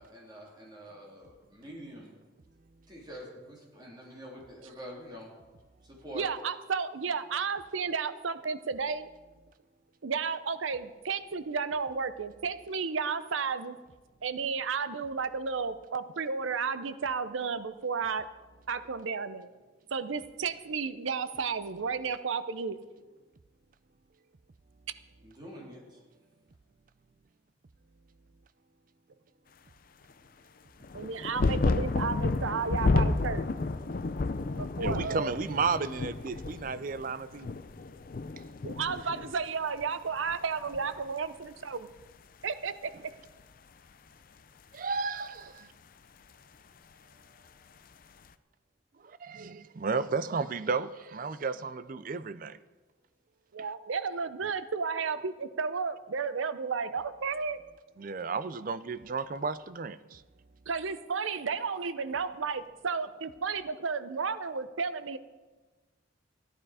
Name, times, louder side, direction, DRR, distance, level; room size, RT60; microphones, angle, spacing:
voice 1, 0.0-2.1 2.9-5.3 5.8-6.3 25.2-26.0, equal, 20° right, 2.9 m, -46 dB
voice 2, 6.1-9.1 10.0-13.8 14.2-18.3 18.7-19.5 19.9-22.8 30.9-33.5 34.5-35.3 38.6-41.9 42.4-42.7 53.5-57.6 60.7-65.2, right 5 dB, 85° right, 0.7 m, -33 dB
sound 1, 30.8-39.9 40.2-41.1 42.0-42.1, left 3 dB, 45° left, 0.5 m, -31 dB
voice 3, 34.8-37.6 44.7-45.7 49.0-52.6 58.0-60.2, right 4 dB, 45° right, 0.4 m, -33 dB
14.5 x 11.0 x 4.9 m
head